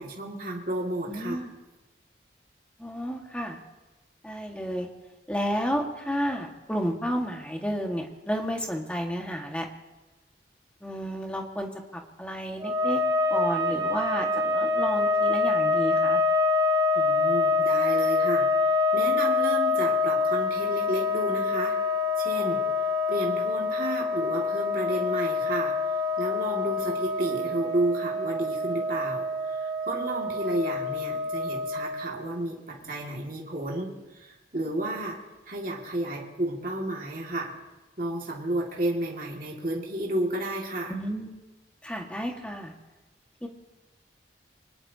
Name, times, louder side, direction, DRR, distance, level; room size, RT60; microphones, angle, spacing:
voice 1, 0.0-1.4 16.9-21.8 22.2-25.8 26.2-35.2 35.5-37.5 38.0-40.9, right 1 dB, 50° right, -2 dB, 2.2 m, -32 dB
voice 2, 1.1-1.5 2.8-3.6 4.2-4.9 5.3-9.7 10.8-13.0 13.3-16.2 40.9-41.3 41.8-42.7 43.4-43.5, equal, 5° left, 1 dB, 1.6 m, -31 dB
sound 1, 12.6-32.2, left 3 dB, 20° right, 1.4 m, -26 dB
25.0 x 19.5 x 2.8 m, 1.1 s
head